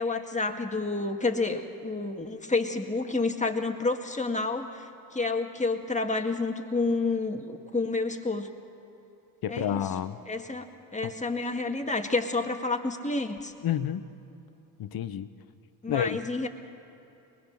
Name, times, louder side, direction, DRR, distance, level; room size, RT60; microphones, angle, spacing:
voice 1, 0.0-8.5 9.5-9.8 10.3-10.7 10.9-13.5 15.8-16.5, left 3 dB, 15° left, 4 dB, 1.9 m, -29 dB
voice 2, 9.4-10.2 11.0-11.1 13.6-14.1 14.8-15.3 15.9-16.2, left 9 dB, 45° left, 13 dB, 1.0 m, -29 dB
23.0 x 20.5 x 6.6 m, 2.8 s
hypercardioid pair, 50°, 48 cm